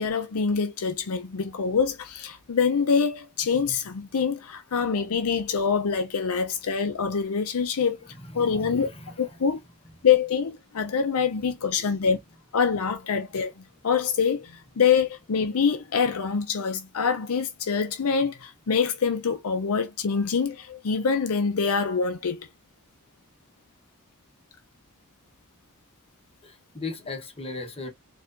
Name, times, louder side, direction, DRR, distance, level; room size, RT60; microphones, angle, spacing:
voice 1, 0.0-8.0 8.3-8.9 9.2-9.6 10.0-12.2 12.5-13.5 13.8-22.5, left 6 dB, 70° left, 0.6 m, -25 dB
voice 2, 8.0-9.5 11.8-11.9 26.4-27.9, left 3 dB, 25° left, 1.0 m, -38 dB
4.3 x 2.5 x 2.5 m
head